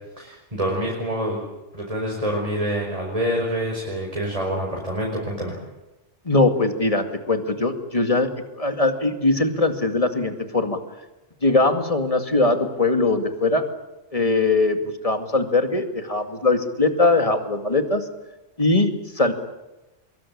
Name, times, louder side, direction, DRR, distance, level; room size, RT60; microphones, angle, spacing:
voice 1, 0.2-1.4 1.7-5.5, equal, 30° right, -1 dB, 5.1 m, -26 dB
voice 2, 6.3-8.3 8.6-10.8 11.4-13.6 14.1-14.8 15.0-18.0 18.6-19.3, left 2 dB, 30° left, 6 dB, 2.4 m, -21 dB
24.0 x 22.5 x 8.7 m, 1.0 s
omnidirectional pair, 1.2 m